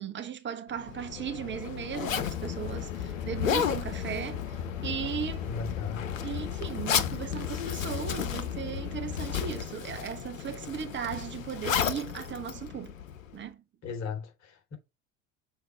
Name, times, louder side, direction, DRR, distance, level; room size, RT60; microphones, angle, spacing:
voice 1, 0.0-5.5 6.2-12.9 13.3-13.6, right 8 dB, 30° right, 1.0 m, -37 dB
Zipper (clothing), 0.7-13.4, left 8 dB, 80° left, 1.0 m, -34 dB
sound 1, 2.2-9.6, left 9 dB, 55° left, 4.9 m, -37 dB
voice 2, 5.4-6.1 13.8-14.7, left 5 dB, 40° left, 3.4 m, -37 dB
6.7 x 4.7 x 4.6 m
figure-of-eight pair, 75°, 40 cm